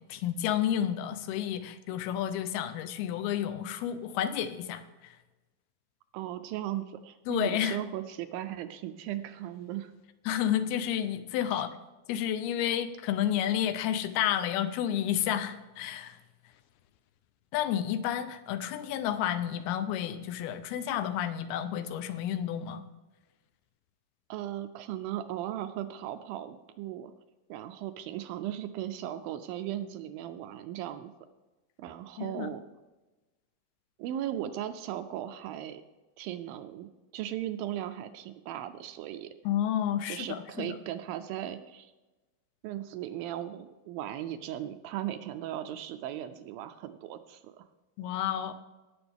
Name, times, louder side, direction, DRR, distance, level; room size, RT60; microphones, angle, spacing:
voice 1, 0.0-5.1 7.3-7.8 10.3-11.7 12.1-16.2 17.5-22.8 32.2-32.5 39.5-40.8 48.0-48.5, left 10 dB, 85° left, 10 dB, 2.6 m, -31 dB
voice 2, 6.1-9.9 11.5-11.6 24.3-27.1 27.5-31.1 31.8-32.6 34.0-35.8 36.2-39.3 40.1-41.9 42.6-47.7, right 12 dB, 80° right, 9 dB, 2.2 m, -37 dB
17.5 x 6.9 x 3.5 m, 1.1 s
omnidirectional pair, 4.4 m